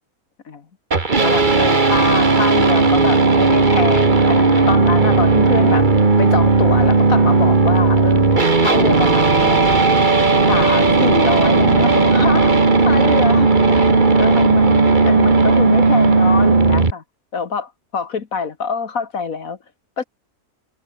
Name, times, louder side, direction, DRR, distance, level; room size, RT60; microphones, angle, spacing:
sound 1, 0.9-16.9, right 3 dB, 30° right, 1.9 m, -14 dB
voice 1, 1.2-5.9 6.2-9.8 10.5-12.5 12.8-13.8 14.2-17.0 17.3-19.6 20.0-20.1, left 5 dB, 65° left, 2.0 m, -25 dB
omnidirectional pair, 1.6 m